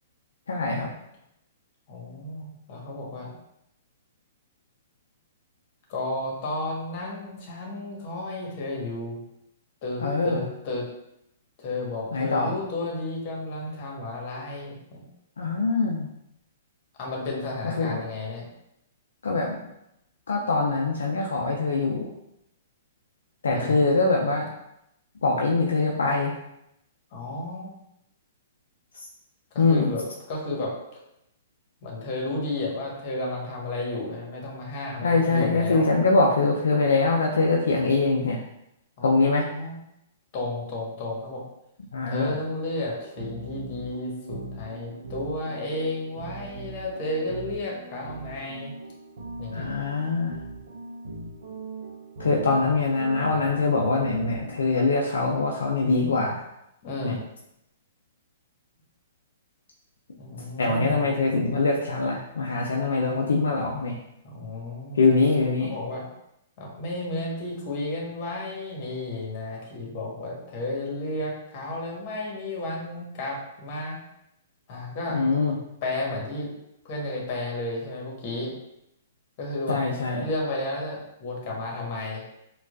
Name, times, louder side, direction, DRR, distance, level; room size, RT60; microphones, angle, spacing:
voice 1, 0.5-0.9 10.0-10.5 12.1-12.6 15.4-16.1 17.8-18.0 19.2-19.6 20.3-22.1 23.4-24.5 25.2-26.4 28.9-29.1 29.6-29.9 35.0-38.4 39.0-39.5 41.9-42.4 49.5-50.4 52.2-56.4 57.0-57.2 60.6-64.0 64.9-65.8 75.1-75.6 79.7-80.3, left 3 dB, 80° left, -1 dB, 0.4 m, -23 dB
voice 2, 1.9-3.4 5.9-9.2 9.8-10.9 11.6-15.0 17.0-18.5 23.5-23.7 27.1-27.8 29.5-30.7 31.8-35.9 39.0-39.8 40.3-41.4 42.1-48.7 49.4-49.7 56.8-57.2 60.2-61.1 64.2-65.0 65.6-66.0 66.6-74.0 74.7-75.2 75.8-76.5 76.8-78.5 79.4-79.8 80.2-82.2, left 2 dB, 45° left, -2 dB, 1.2 m, -32 dB
sound 1, 42.4-54.9, right 3 dB, 75° right, 0.6 m, -40 dB
4.4 x 2.3 x 2.4 m, 0.82 s
hypercardioid pair, 120°, 0 cm